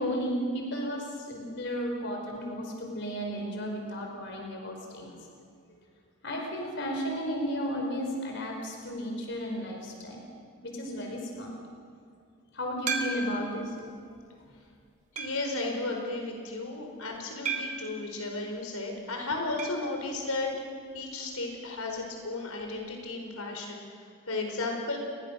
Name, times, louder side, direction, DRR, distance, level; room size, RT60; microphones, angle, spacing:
voice 1, 0.0-5.2 6.2-10.2 10.6-11.6 12.5-13.8, equal, 55° left, 1 dB, 4.7 m, -33 dB
sound 1, 12.9-13.6 14.2-14.3 15.2-15.6 17.5-17.9 19.6-19.9 20.1-20.2 20.5-20.6 22.6-22.7, right 4 dB, 35° right, 2.3 m, -34 dB
voice 2, 15.2-20.5 20.9-25.0, left 2 dB, 85° left, 2 dB, 4.7 m, -34 dB
29.5 x 23.0 x 6.5 m, 2.2 s
head